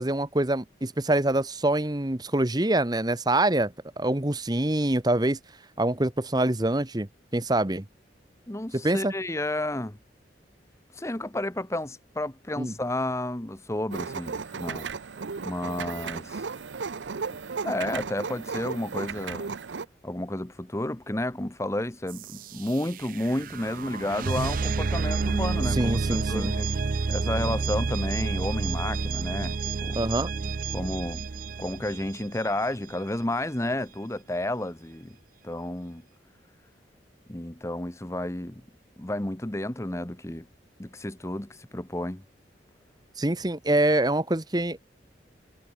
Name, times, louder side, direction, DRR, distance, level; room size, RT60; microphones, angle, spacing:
voice 1, 0.0-5.4 5.8-7.8 8.7-9.1 12.6-12.7 25.7-26.5 29.9-30.3 43.2-44.8, right 1 dB, 20° right, 1.2 m, -25 dB
voice 2, 8.5-10.0 10.9-14.9 15.4-16.4 17.6-19.5 20.0-26.7 27.1-29.5 29.8-30.0 30.7-31.2 31.6-35.1 35.4-36.0 37.3-38.6 39.0-40.5 40.8-42.2, left 1 dB, 15° left, 1.0 m, -31 dB
sound 1, 13.9-19.9, right 5 dB, 80° right, 0.7 m, -35 dB
sound 2, 22.1-32.9, right 4 dB, 50° right, 0.5 m, -30 dB
head